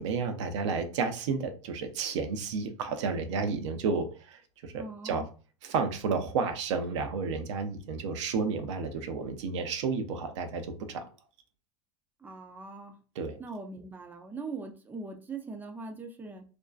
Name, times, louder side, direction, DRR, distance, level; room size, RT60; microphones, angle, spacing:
voice 1, 0.0-5.2 5.6-11.0 13.2-13.4, right 5 dB, 75° right, 7 dB, 0.5 m, -31 dB
voice 2, 4.8-5.2 12.2-12.9 13.4-16.4, right 3 dB, 10° right, 4 dB, 0.5 m, -41 dB
2.5 x 2.1 x 2.3 m, 0.36 s
hypercardioid pair, 105°, 16 cm